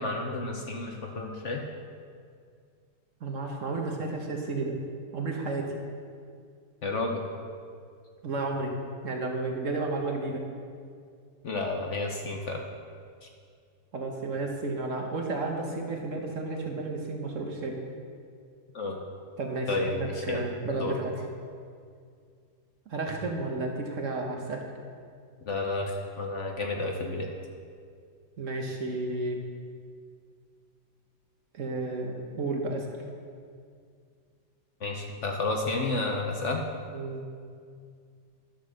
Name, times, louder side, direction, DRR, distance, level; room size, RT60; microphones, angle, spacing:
voice 1, 0.0-1.6 6.8-7.2 11.4-12.6 18.7-19.0 19.7-20.4 20.7-20.9 25.4-27.3 34.8-36.6, left 2 dB, 55° left, 2 dB, 1.0 m, -31 dB
voice 2, 3.2-4.8 5.1-5.7 8.2-8.7 9.0-10.4 13.9-17.8 19.4-21.1 22.9-24.6 28.4-29.4 31.5-32.9 36.9-37.4, right 3 dB, 55° right, 2 dB, 1.3 m, -32 dB
11.5 x 6.4 x 6.3 m, 2.2 s
omnidirectional pair, 1.8 m